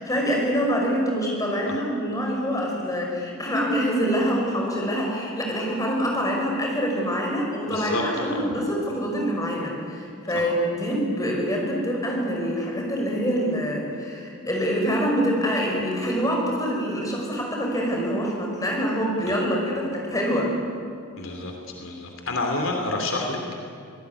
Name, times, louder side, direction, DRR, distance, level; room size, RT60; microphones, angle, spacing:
voice 1, 0.0-20.5, equal, 15° left, -1 dB, 5.8 m, -25 dB
voice 2, 7.7-8.4 21.2-21.5 21.8-23.6, left 2 dB, 75° left, 2 dB, 3.2 m, -28 dB
25.5 x 18.5 x 9.8 m, 2.3 s
head